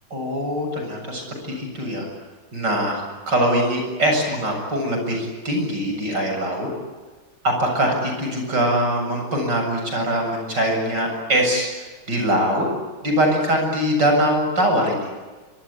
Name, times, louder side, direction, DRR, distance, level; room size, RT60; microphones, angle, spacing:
voice 1, 0.1-1.2 1.5-2.1 2.5-3.0 3.3-6.7 7.4-11.7 12.1-12.7 13.0-15.1, equal, 55° right, 2 dB, 8.2 m, -22 dB
26.0 x 25.0 x 8.6 m, 1.3 s
omnidirectional pair, 2.2 m